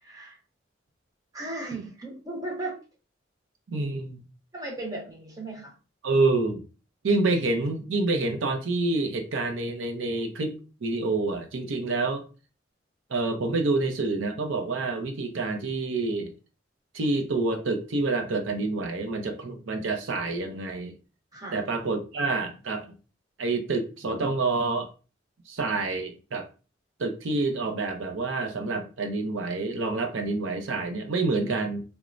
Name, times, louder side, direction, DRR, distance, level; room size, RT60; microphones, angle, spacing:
voice 1, 0.0-0.4 1.3-2.8 4.5-5.7 21.3-21.6, right 2 dB, 20° right, 0.7 m, -36 dB
voice 2, 3.7-4.2 6.0-6.6 7.0-10.5 10.8-12.2 13.1-16.3 16.9-20.9 21.5-22.9 23.4-24.9 25.5-26.5 27.0-31.8, right 3 dB, 85° right, 0.6 m, -27 dB
3.0 x 2.1 x 2.4 m
head